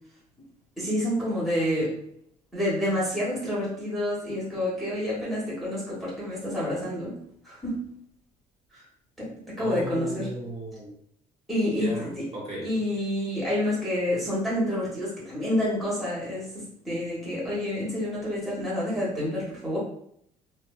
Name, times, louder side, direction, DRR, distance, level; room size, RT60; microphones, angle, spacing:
voice 1, 0.8-1.9 2.5-7.2 7.4-7.8 8.7-8.8 9.2-10.3 11.5-12.3 12.6-19.8, left 1 dB, ahead, -8 dB, 1.1 m, -28 dB
voice 2, 9.6-10.9 11.8-12.9, right 1 dB, 40° right, -5 dB, 1.2 m, -36 dB
2.6 x 2.3 x 2.2 m, 0.68 s
cardioid pair, 110°, 17 cm